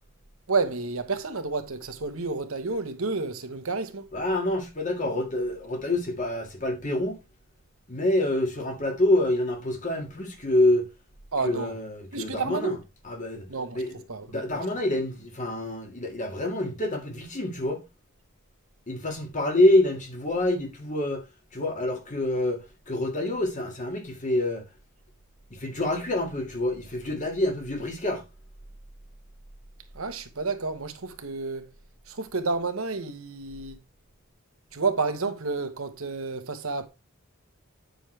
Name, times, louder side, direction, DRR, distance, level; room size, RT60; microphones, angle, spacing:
voice 1, 0.5-4.1 11.3-11.8 12.1-12.8 13.5-13.8 14.1-14.6 29.9-31.7 32.1-33.8 34.7-36.9, right 4 dB, 70° right, 1.2 m, -30 dB
voice 2, 4.1-7.2 7.9-10.8 11.4-12.8 13.0-13.5 13.7-14.0 14.3-17.8 18.9-21.2 21.5-22.6 22.9-24.6 25.5-28.2, left 1 dB, 35° left, 2.0 m, -26 dB
9.1 x 6.2 x 3.3 m
head